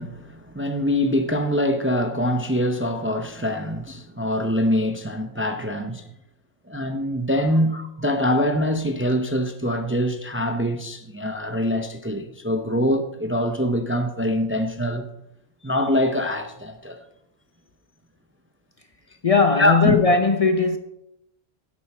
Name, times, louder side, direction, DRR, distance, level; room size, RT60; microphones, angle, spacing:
voice 1, 0.0-6.1 6.7-15.1 15.6-17.0 19.6-20.0, equal, 15° right, 0.6 m, -24 dB
voice 2, 19.2-20.8, left 4 dB, 40° left, 0.7 m, -18 dB
10.5 x 8.6 x 4.3 m
omnidirectional pair, 1.1 m